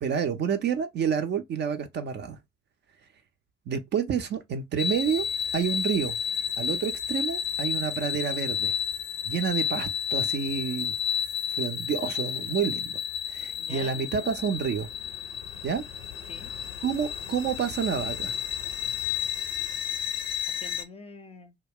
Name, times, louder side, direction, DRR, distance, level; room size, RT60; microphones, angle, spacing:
voice 1, 0.0-2.4 3.7-5.3 5.5-6.2 6.6-8.7 9.2-10.9 11.6-13.0 13.3-14.9 15.6-15.8 16.8-18.3, right 7 dB, 35° right, 0.4 m, -29 dB
sound 1, 4.8-20.8, left 8 dB, 75° left, 0.6 m, -31 dB
voice 2, 12.3-12.6 13.6-14.1 16.2-16.5 20.5-21.6, left 3 dB, 20° left, 0.5 m, -46 dB
2.2 x 2.1 x 3.5 m
figure-of-eight pair, 45°, 30 cm